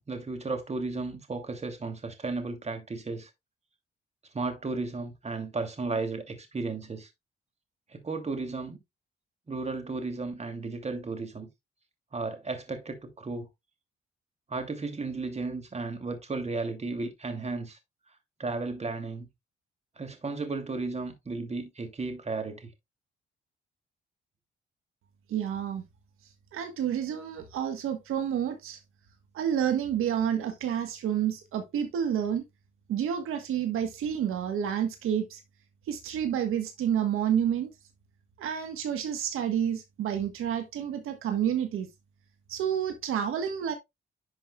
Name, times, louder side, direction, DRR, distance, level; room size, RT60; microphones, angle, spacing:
voice 1, 0.0-3.3 4.3-7.1 7.9-8.8 9.5-11.5 12.1-13.5 14.5-17.8 18.4-19.3 20.0-22.7, right 3 dB, 30° right, 2.7 m, -34 dB
voice 2, 25.3-25.8 26.5-28.8 29.3-32.4 32.9-35.4 35.9-37.7 38.4-41.9 42.5-43.7, right 9 dB, 85° right, 1.4 m, -29 dB
11.0 x 5.6 x 2.3 m
cardioid pair, 85°, 21 cm